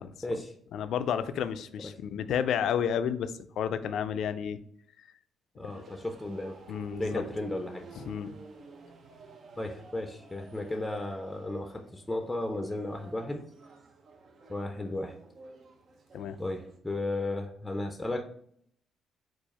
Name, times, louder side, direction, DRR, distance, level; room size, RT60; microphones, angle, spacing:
voice 1, 0.0-0.5 1.8-1.9 5.6-6.6 7.0-7.9 9.6-13.4 14.5-15.2 16.4-18.2, left 2 dB, 10° left, 4 dB, 0.5 m, -34 dB
voice 2, 0.7-4.6 5.6-5.8 6.7-7.2 8.0-8.3 16.1-16.4, left 8 dB, 75° left, 11 dB, 0.3 m, -31 dB
sound 1, 5.7-16.8, right 4 dB, 55° right, 0.6 m, -52 dB
4.6 x 2.4 x 4.1 m, 0.66 s
cardioid pair, 90°, 0 cm